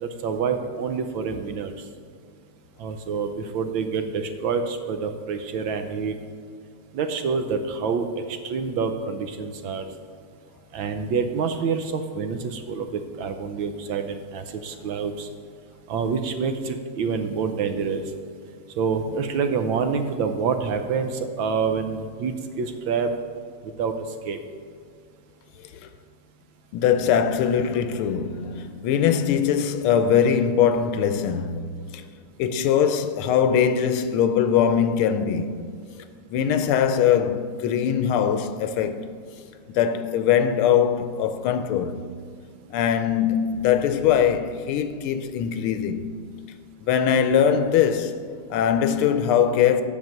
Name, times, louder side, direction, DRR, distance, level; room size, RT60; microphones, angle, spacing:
voice 1, 0.0-1.7 2.8-6.1 6.9-9.9 10.7-15.3 15.9-18.0 18.8-23.1 23.8-23.9 24.3-24.4, right 5 dB, 70° right, 1.4 m, -27 dB
voice 2, 26.7-32.0 32.4-35.6 36.3-39.0 39.7-42.1 42.7-46.0 46.8-49.8, left 8 dB, 80° left, 1.5 m, -22 dB
8.9 x 5.9 x 6.4 m
omnidirectional pair, 2.4 m